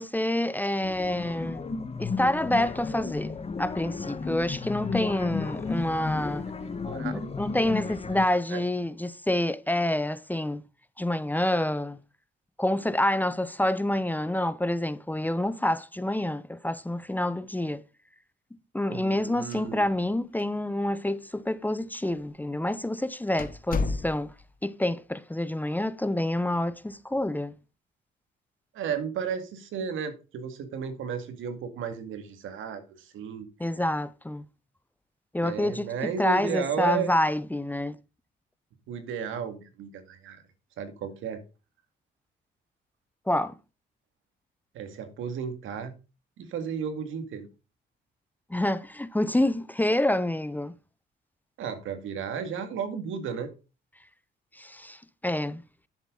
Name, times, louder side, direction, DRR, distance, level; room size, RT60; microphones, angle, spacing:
voice 1, 0.0-1.6 2.0-3.3 3.6-6.4 7.1-10.6 11.0-12.0 12.6-17.8 18.7-24.3 24.6-27.5 33.6-34.4 35.3-35.9 36.2-38.0 43.3-43.6 48.5-50.7 54.5-55.6, left 1 dB, 10° left, 0.8 m, -27 dB
sound 1, 0.8-8.3, left 4 dB, 30° left, 1.4 m, -33 dB
voice 2, 6.6-7.5 7.7-7.8 8.5-8.6 18.9-19.8 28.7-33.5 35.4-37.1 38.9-40.4 40.8-41.4 44.7-45.9 46.4-47.5 51.6-53.5, right 7 dB, 85° right, 2.2 m, -34 dB
sound 2, 19.4-20.1 20.4-20.5 21.3-21.4 22.1-22.3 22.7-22.8 23.4-24.5, left 4 dB, 45° left, 1.4 m, -32 dB
10.5 x 8.2 x 3.9 m
cardioid pair, 90°, 20 cm